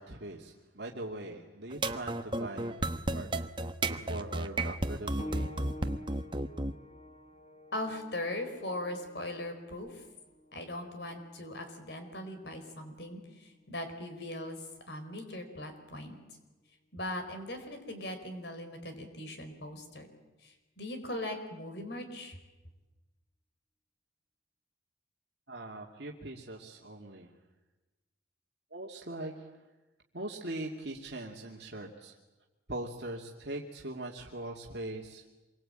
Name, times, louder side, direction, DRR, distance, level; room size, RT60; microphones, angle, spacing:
voice 1, 0.0-2.8 3.1-3.5 3.9-5.5 25.5-27.3 28.7-29.5 30.1-32.1 32.7-35.5, right 2 dB, 60° right, -1 dB, 2.5 m, -41 dB
sound 1, 1.7-6.7, right 2 dB, 25° right, 1.0 m, -32 dB
sound 2, 5.2-15.4 16.4-16.5 17.2-17.3, left 1 dB, 35° left, 2.6 m, -50 dB
voice 2, 7.7-10.0 10.5-14.6 14.9-16.2 16.9-20.1 20.4-22.4, left 1 dB, 60° left, 7 dB, 4.8 m, -39 dB
27.0 x 23.5 x 9.0 m, 1.1 s
head